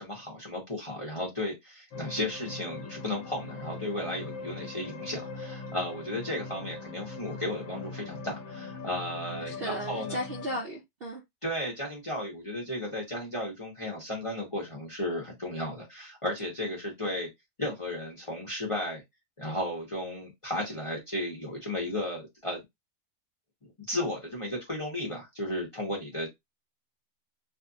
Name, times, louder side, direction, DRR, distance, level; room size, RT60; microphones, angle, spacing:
voice 1, 0.0-10.2 11.4-17.3 17.6-19.0 19.4-22.6 23.9-26.3, left 1 dB, 30° left, 0.7 m, -34 dB
sound 1, 1.9-10.6, left 3 dB, 70° left, 1.1 m, -41 dB
voice 2, 9.4-11.2, equal, 55° right, 0.6 m, -35 dB
2.7 x 2.4 x 2.5 m
omnidirectional pair, 1.6 m